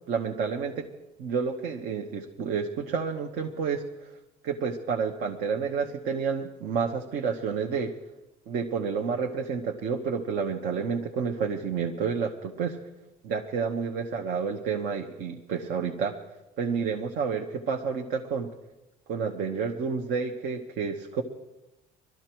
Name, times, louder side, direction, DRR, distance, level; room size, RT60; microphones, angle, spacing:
voice 1, 0.1-0.9 1.2-4.1 4.4-7.9 8.5-12.8 13.2-16.2 16.6-18.5 19.1-21.2, right 6 dB, 80° right, 2 dB, 1.1 m, -30 dB
21.5 x 13.0 x 4.6 m, 1.0 s
cardioid pair, 110°, 17 cm